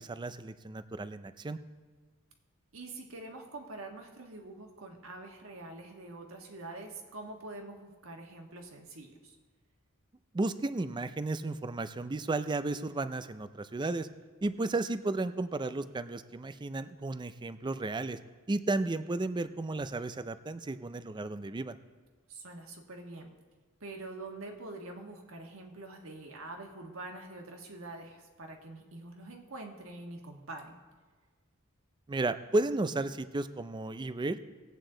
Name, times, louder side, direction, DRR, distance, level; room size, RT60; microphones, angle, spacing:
voice 1, 0.0-1.6 10.3-14.1 14.4-18.2 18.5-21.8 32.1-34.4, right 2 dB, 20° right, 12 dB, 0.4 m, -33 dB
voice 2, 2.7-9.4 22.3-23.3 23.8-30.8, right 2 dB, 70° right, 2 dB, 1.5 m, -45 dB
18.5 x 8.3 x 3.9 m, 1.4 s
head